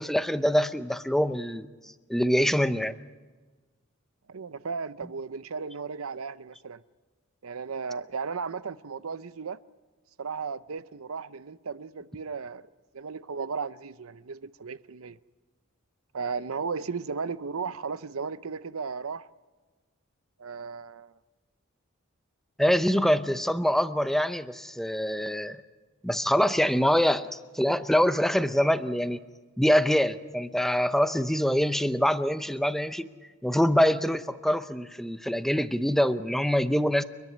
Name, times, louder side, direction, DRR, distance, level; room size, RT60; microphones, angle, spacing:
voice 1, 0.0-1.7 2.1-2.9 22.6-25.6 26.0-29.2 29.6-33.1 33.4-37.0, equal, ahead, 0.7 m, -24 dB
voice 2, 4.3-6.8 7.4-9.6 10.2-12.6 12.9-15.2 16.1-19.3 20.4-21.1, right 5 dB, 70° right, 0.7 m, -35 dB
30.0 x 11.0 x 9.7 m
head